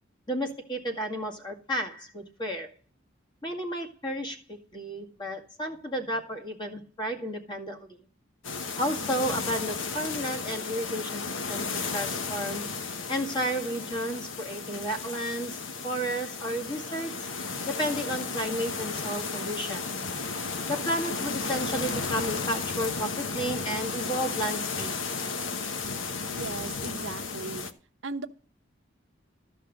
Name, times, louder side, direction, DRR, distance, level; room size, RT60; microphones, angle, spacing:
voice 1, 0.3-2.7 3.4-8.0 8.8-12.7 13.1-17.3 17.7-19.9 20.7-24.9, equal, 25° left, 1 dB, 2.0 m, -32 dB
sound 1, 8.4-27.7, left 4 dB, 80° left, 1.1 m, -34 dB
voice 2, 26.3-27.7 28.0-28.3, right 3 dB, 75° right, 8 dB, 0.9 m, -37 dB
13.5 x 5.4 x 6.5 m, 0.39 s
head